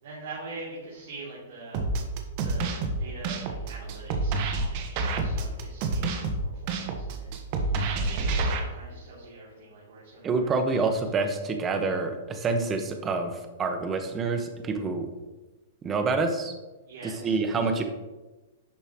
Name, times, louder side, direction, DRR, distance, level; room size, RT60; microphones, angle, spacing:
voice 1, 0.0-1.9 2.4-11.2 16.9-17.7, right 2 dB, 65° right, -6 dB, 3.0 m, -44 dB
sound 1, 1.7-8.6, right 3 dB, 50° right, 1.3 m, -28 dB
voice 2, 10.2-15.1 15.8-16.5 17.2-17.8, right 3 dB, 25° right, 6 dB, 1.3 m, -27 dB
11.0 x 6.7 x 3.1 m, 1.1 s
hypercardioid pair, 115°, 0 cm